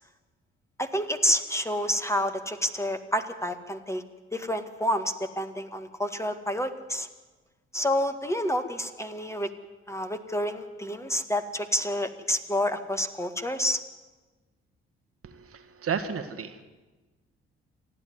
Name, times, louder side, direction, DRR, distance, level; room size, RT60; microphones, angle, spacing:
voice 1, 0.8-4.0 4.3-7.1 7.7-9.5 9.9-13.8, equal, 10° left, 7 dB, 1.9 m, -29 dB
voice 2, 15.2-16.6, right 6 dB, 45° right, 8 dB, 1.9 m, -33 dB
28.0 x 10.5 x 9.7 m, 1.2 s
figure-of-eight pair, 45°, 31 cm